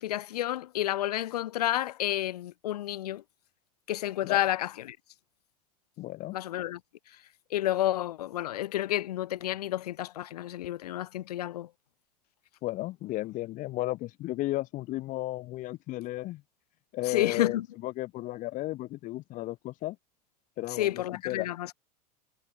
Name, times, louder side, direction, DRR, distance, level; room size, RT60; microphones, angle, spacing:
voice 1, 0.0-3.2 3.9-5.0 6.3-6.8 7.5-11.7 17.1-17.7 20.7-21.7, left 13 dB, 75° left, 0.7 m, -30 dB
voice 2, 6.0-6.4 12.6-16.4 16.9-20.0 20.6-21.5, left 17 dB, 40° left, 0.7 m, -34 dB
hypercardioid pair, 85°, 20 cm